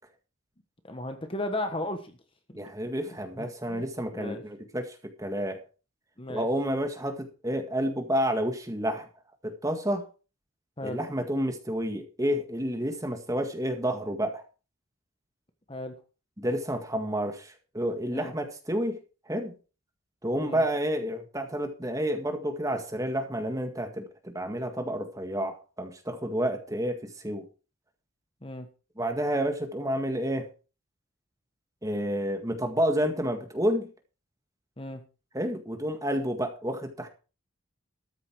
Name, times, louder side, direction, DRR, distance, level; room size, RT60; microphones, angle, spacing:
voice 1, 0.8-2.2 2.5-2.6 3.1-4.4 6.2-6.5 10.8-11.0 15.7-15.9 18.1-18.3 20.4-20.6 28.4-28.7 34.8-35.0, left 1 dB, 25° left, 7 dB, 1.2 m, -36 dB
voice 2, 2.5-5.6 6.3-9.1 9.4-10.1 10.8-14.4 16.4-19.0 19.3-19.5 20.2-27.5 29.0-30.5 31.8-33.9 35.3-37.1, equal, 15° right, 5 dB, 1.8 m, -30 dB
13.5 x 9.6 x 4.6 m, 0.34 s
head